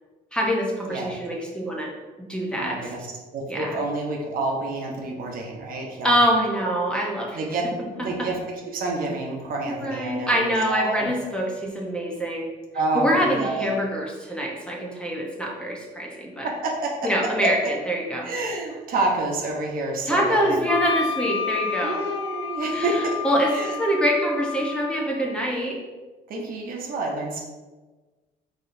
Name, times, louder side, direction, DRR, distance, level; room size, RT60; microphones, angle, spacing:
voice 1, 0.3-1.9 2.3-2.8 3.5-3.7 6.0-7.4 8.2-8.3 9.6-12.5 12.9-16.5 17.0-18.3 20.1-22.0 22.7-25.8, equal, 5° left, -2 dB, 0.9 m, -25 dB
voice 2, 2.5-3.1 3.3-6.1 7.3-7.6 8.0-8.4 8.7-11.1 12.7-13.7 16.4-16.9 18.2-20.6 21.8-23.2 23.5-23.8 26.3-27.4, right 2 dB, 55° right, 0 dB, 0.9 m, -28 dB
Wind instrument woodwind instrument, 20.7-25.2, left 8 dB, 35° left, 1.3 m, -30 dB
4.7 x 4.3 x 2.7 m, 1.2 s
cardioid pair, 110°, 17 cm